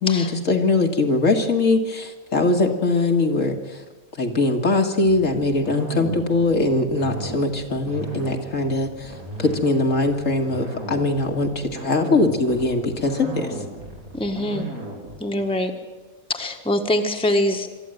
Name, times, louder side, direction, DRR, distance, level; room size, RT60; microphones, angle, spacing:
voice 1, 0.0-3.8 4.2-9.1 9.4-13.5, left 2 dB, 65° left, 3 dB, 2.3 m, -21 dB
sound 1, 5.1-15.2, right 1 dB, 85° right, 4.4 m, -35 dB
voice 2, 14.1-14.7 15.2-15.7 16.3-17.9, left 1 dB, 5° left, 4 dB, 1.5 m, -24 dB
23.5 x 13.5 x 9.3 m, 1.3 s
omnidirectional pair, 1.4 m